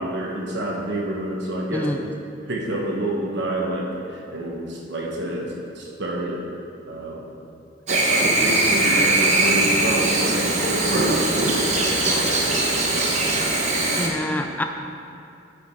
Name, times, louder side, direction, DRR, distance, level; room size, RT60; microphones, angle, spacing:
voice 1, 0.0-2.0 2.5-6.4 6.9-7.2 7.9-13.2, right 1 dB, 55° right, -2 dB, 1.2 m, -28 dB
Chirp tweet / Buzz, 7.9-14.1, right 2 dB, 35° right, 0.9 m, -21 dB
voice 2, 14.0-14.6, left 1 dB, 10° left, 4 dB, 0.3 m, -26 dB
9.3 x 5.0 x 4.6 m, 2.5 s
head